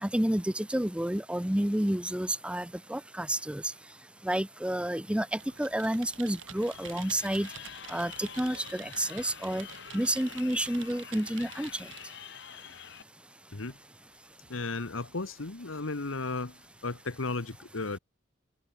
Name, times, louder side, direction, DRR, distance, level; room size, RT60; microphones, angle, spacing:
voice 1, 0.0-3.6 4.2-7.5 7.9-9.7 9.9-11.9, right 1 dB, 5° right, 0.8 m, -30 dB
Computer keyboard, 5.3-12.1, right 8 dB, 70° right, 6.6 m, -48 dB
Crowd, 6.6-13.0, left 9 dB, 65° left, 1.5 m, -47 dB
voice 2, 14.5-18.0, left 3 dB, 80° left, 1.4 m, -35 dB
open air
head